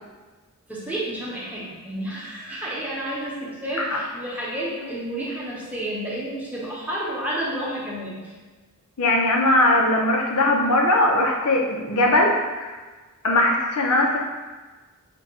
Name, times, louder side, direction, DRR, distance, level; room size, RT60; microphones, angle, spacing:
voice 1, 0.7-8.3, right 1 dB, 5° right, -6 dB, 0.8 m, -30 dB
voice 2, 9.0-12.8 13.2-14.2, left 1 dB, 85° left, -1 dB, 0.7 m, -20 dB
5.6 x 2.3 x 3.6 m, 1.3 s
head